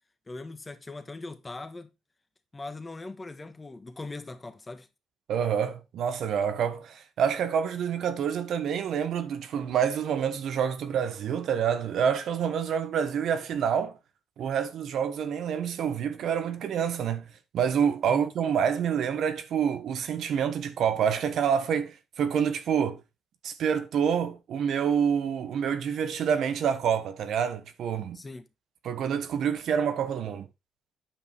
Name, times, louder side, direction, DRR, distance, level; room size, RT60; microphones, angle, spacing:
voice 1, 0.3-1.9 2.5-4.9 18.1-18.2 28.1-28.4, left 3 dB, 25° left, 1.4 m, -40 dB
voice 2, 5.3-14.0 14.4-17.3 17.5-23.0 23.4-28.2 28.8-30.5, right 7 dB, 70° right, 1.2 m, -27 dB
9.1 x 5.4 x 4.4 m
cardioid pair, 90°, 0 cm